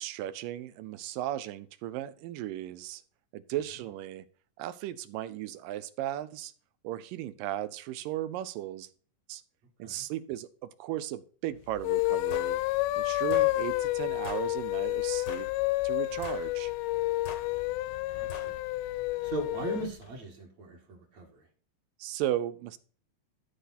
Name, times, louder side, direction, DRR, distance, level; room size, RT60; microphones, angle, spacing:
voice 1, 0.0-3.0 3.3-4.3 4.6-6.5 6.8-8.9 9.3-9.4 9.8-12.6 13.0-15.5 15.8-16.7 22.0-22.8, right 13 dB, 90° right, 14 dB, 2.4 m, -36 dB
sound 1, 11.8-19.9, left 19 dB, 80° left, 2.1 m, -30 dB
sound 2, 12.3-12.5 13.3-13.5 14.2-14.5 15.3-15.5 16.2-16.5 17.3-17.5 18.3-18.5, left 5 dB, 65° left, 1.1 m, -43 dB
voice 2, 18.1-18.6 19.2-21.4, right 2 dB, 55° right, -2 dB, 2.8 m, -39 dB
12.5 x 5.0 x 4.2 m, 0.43 s
omnidirectional pair, 3.8 m